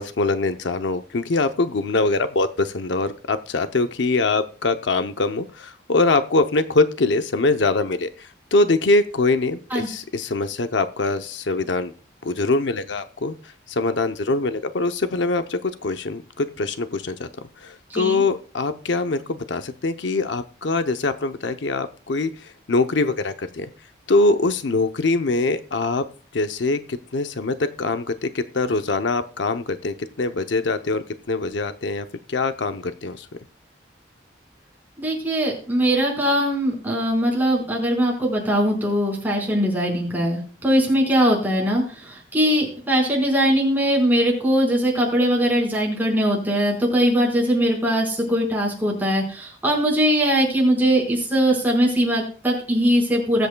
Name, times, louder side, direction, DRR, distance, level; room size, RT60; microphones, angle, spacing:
voice 1, 0.0-11.9 12.2-13.4 13.7-17.3 17.6-23.7 24.1-26.0 26.3-33.3, left 3 dB, 75° left, 8 dB, 0.7 m, -23 dB
voice 2, 35.0-53.5, equal, 10° right, -2 dB, 4.6 m, -21 dB
21.0 x 8.1 x 2.2 m, 0.40 s
head